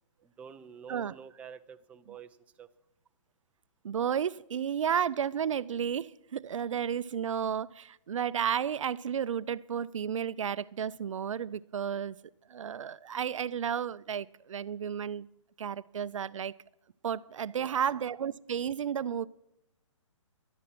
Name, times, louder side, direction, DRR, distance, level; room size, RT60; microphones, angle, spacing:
voice 1, 0.2-2.7 17.5-18.0, right 7 dB, 10° right, 9 dB, 0.5 m, -49 dB
voice 2, 3.8-12.2 12.5-15.3 15.6-16.5 17.0-19.3, right 8 dB, 75° right, 19 dB, 0.5 m, -32 dB
12.0 x 11.0 x 5.9 m, 0.88 s
hypercardioid pair, 145°, 17 cm